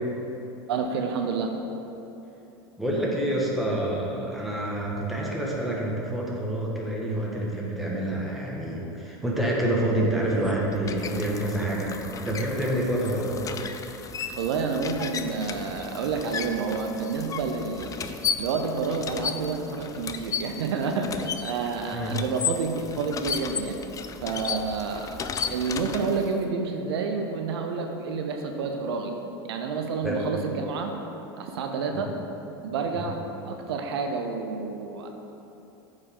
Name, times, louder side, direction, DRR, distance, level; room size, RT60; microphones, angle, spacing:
voice 1, 0.7-1.5 14.4-18.0 18.4-23.8 24.2-25.2 25.5-29.1 29.4-30.9 31.4-32.1 32.6-33.2 33.4-35.1, right 4 dB, 80° right, 4 dB, 0.6 m, -29 dB
voice 2, 2.8-11.9 12.2-13.3 21.9-22.2 30.0-30.2 31.9-32.0 32.9-33.0, right 1 dB, ahead, -5 dB, 1.5 m, -27 dB
sound 1, 10.2-26.4, left 7 dB, 25° left, 0.4 m, -35 dB
8.4 x 4.9 x 3.9 m, 2.9 s
hypercardioid pair, 95°, 13 cm